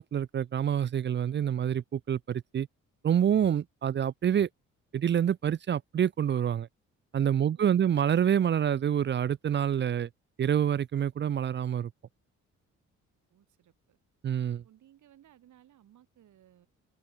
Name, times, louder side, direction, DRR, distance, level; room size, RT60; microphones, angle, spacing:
voice 1, 0.0-2.7 3.0-4.5 4.9-6.7 7.1-10.1 10.4-11.9 14.2-14.6, right 9 dB, 35° right, 0.5 m, -27 dB
voice 2, 7.3-7.8 13.3-14.0 14.6-16.7, right 11 dB, 75° right, 7.3 m, -60 dB
open air
cardioid pair, 90°, 30 cm